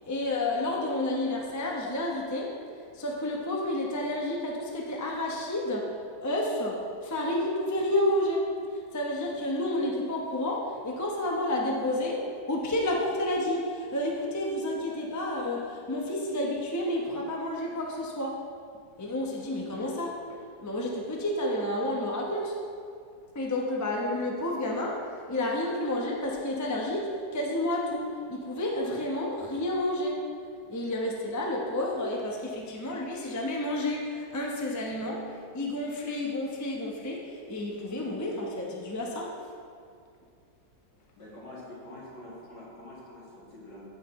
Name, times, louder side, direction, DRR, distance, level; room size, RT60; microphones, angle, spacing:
voice 1, 0.1-2.5 2.9-5.9 6.2-8.4 8.9-18.4 19.0-22.6 23.3-30.2 30.7-39.4, left 1 dB, 15° left, -2 dB, 0.6 m, -30 dB
voice 2, 41.2-43.9, left 1 dB, 70° left, -8 dB, 3.2 m, -46 dB
14.5 x 5.8 x 3.1 m, 2.3 s
omnidirectional pair, 1.9 m